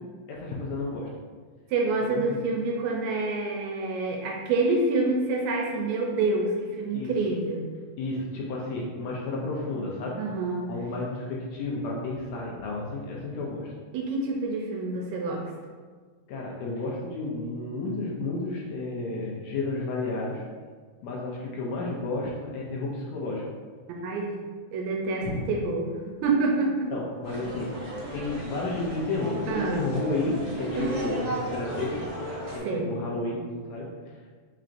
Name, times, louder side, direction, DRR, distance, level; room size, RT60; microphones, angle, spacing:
voice 1, 0.3-1.1 2.0-2.2 6.9-7.1 8.0-10.2 10.7-13.7 16.3-20.4 21.0-23.4 25.2-25.4 26.9-27.8 28.1-32.0 32.5-34.2, left 2 dB, 75° left, -3 dB, 1.6 m, -32 dB
voice 2, 1.7-7.7 10.2-10.7 13.9-15.5 24.0-24.3 24.7-25.9 26.2-26.9 29.5-29.9 30.8-30.9 32.6-32.9, right 3 dB, 80° right, 0 dB, 1.7 m, -27 dB
sound 1, 27.2-32.6, right 1 dB, 60° right, 1.3 m, -35 dB
5.0 x 4.2 x 2.5 m, 1.5 s
omnidirectional pair, 3.7 m